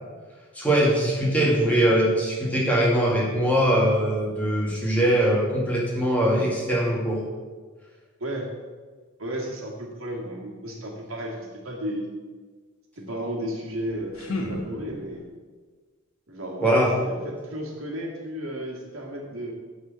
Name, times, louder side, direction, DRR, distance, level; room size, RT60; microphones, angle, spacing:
voice 1, 0.5-7.2 16.6-16.9, right 1 dB, 5° left, -5 dB, 2.2 m, -22 dB
voice 2, 9.2-12.1 13.0-15.2 16.3-19.5, equal, 75° right, -1 dB, 1.9 m, -33 dB
sound 1, 13.7-15.3, left 2 dB, 85° left, 1.2 m, -35 dB
9.3 x 4.2 x 7.4 m, 1.4 s
head